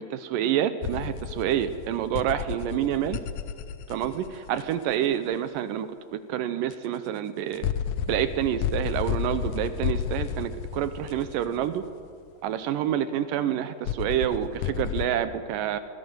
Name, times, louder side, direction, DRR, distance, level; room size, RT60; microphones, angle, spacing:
voice 1, 0.0-3.2 3.9-7.7 8.1-11.8 12.4-15.8, right 10 dB, 80° right, 12 dB, 2.3 m, -28 dB
sound 1, 0.8-4.9 6.7-6.8 7.5-12.1 13.9-15.1, left 8 dB, 85° left, 1.5 m, -32 dB
22.5 x 16.5 x 7.9 m, 2.3 s
omnidirectional pair, 4.0 m